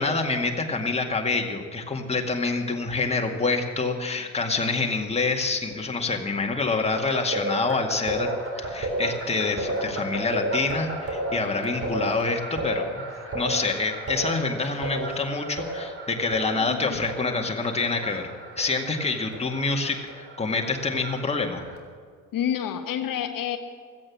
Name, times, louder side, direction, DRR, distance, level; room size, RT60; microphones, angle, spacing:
voice 1, 0.0-8.3 8.6-13.0 13.3-18.3 18.6-21.7, left 3 dB, 15° left, 2 dB, 2.1 m, -27 dB
sound 1, 6.9-21.8, right 1 dB, 30° right, 3.8 m, -33 dB
voice 2, 16.5-17.0 22.3-23.6, left 9 dB, 50° left, 8 dB, 1.3 m, -29 dB
16.5 x 13.5 x 6.2 m, 2.1 s
figure-of-eight pair, 50°, 44 cm